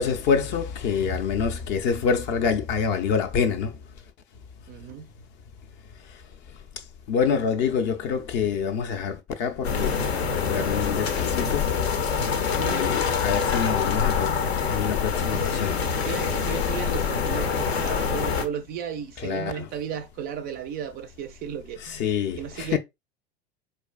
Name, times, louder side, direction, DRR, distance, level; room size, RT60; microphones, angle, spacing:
voice 1, 0.0-3.8 6.1-6.2 6.5-10.0 10.3-11.8 12.2-15.8 19.2-19.7 21.8-22.8, left 6 dB, 35° left, 0.5 m, -27 dB
voice 2, 4.7-5.1 12.5-12.9 15.3-15.7 16.0-22.0 22.4-22.8, right 8 dB, 30° right, 0.4 m, -35 dB
sound 1, 9.6-18.5, left 6 dB, 70° left, 0.7 m, -25 dB
4.3 x 2.5 x 2.3 m
figure-of-eight pair, 80°, 32 cm